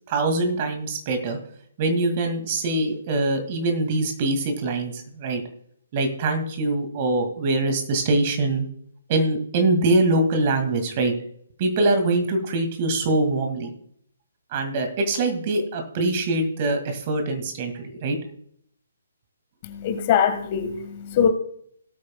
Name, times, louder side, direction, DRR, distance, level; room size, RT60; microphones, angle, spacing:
voice 1, 0.1-1.4 1.8-5.4 5.9-8.7 9.1-11.1 11.6-13.7 14.5-18.2, right 2 dB, 35° right, 6 dB, 2.2 m, -23 dB
voice 2, 19.6-21.3, left 8 dB, 35° left, 7 dB, 1.6 m, -22 dB
18.0 x 8.6 x 2.3 m, 0.64 s
figure-of-eight pair, 135°, 0 cm